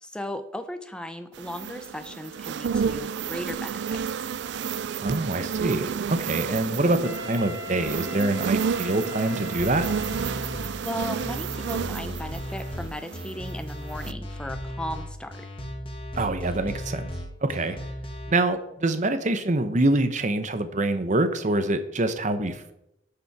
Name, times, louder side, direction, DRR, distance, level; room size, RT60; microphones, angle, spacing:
voice 1, 0.0-4.0 10.8-15.5, left 1 dB, 5° left, 8 dB, 0.7 m, -36 dB
sound 1, 1.4-13.5 13.9-14.1, right 7 dB, 55° right, 0.3 m, -31 dB
voice 2, 5.0-9.9 16.1-17.1 17.4-17.8 18.3-22.7, right 2 dB, 35° right, 10 dB, 0.8 m, -25 dB
Wind instrument woodwind instrument, 7.0-10.9, left 2 dB, 75° right, 1.4 m, -40 dB
sound 2, 9.6-18.3, equal, 25° left, 1.4 m, -36 dB
11.5 x 6.8 x 4.7 m, 0.83 s
head